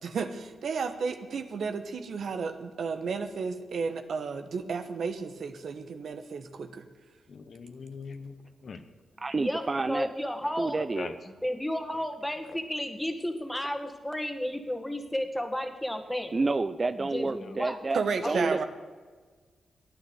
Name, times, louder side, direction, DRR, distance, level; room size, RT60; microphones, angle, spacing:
voice 1, 0.0-6.8 17.9-18.6, right 5 dB, 70° right, 9 dB, 1.2 m, -32 dB
voice 2, 7.3-8.8 11.0-11.1 12.4-12.6, left 5 dB, 60° left, 9 dB, 1.3 m, -41 dB
voice 3, 9.2-10.1 10.6-11.2 16.3-18.6, right 3 dB, 35° right, 12 dB, 0.5 m, -29 dB
voice 4, 9.9-10.9 11.4-16.3 17.1-17.8 18.2-18.5, left 1 dB, 5° left, 6 dB, 2.0 m, -32 dB
13.0 x 9.6 x 8.0 m, 1.4 s
cardioid pair, 70°, 0 cm